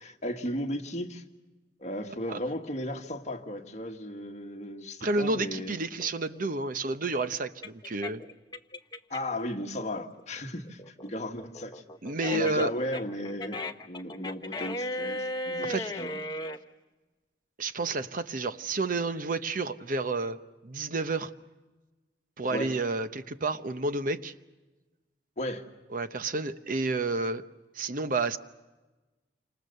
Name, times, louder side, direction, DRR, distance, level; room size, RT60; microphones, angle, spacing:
voice 1, 0.0-1.2 1.8-5.8 9.1-11.8 12.3-16.2 22.5-22.8 25.4-25.6, left 1 dB, 40° left, 3 dB, 1.7 m, -35 dB
voice 2, 5.0-8.2 12.0-12.7 15.6-15.9 17.6-20.4 20.6-21.3 22.4-24.3 25.9-27.4 27.7-28.4, right 3 dB, 50° right, 11 dB, 0.9 m, -30 dB
sound 1, 6.0-9.4 9.8-16.6, left 1 dB, 25° left, 0.9 m, -36 dB
28.5 x 26.5 x 6.7 m, 1.2 s
head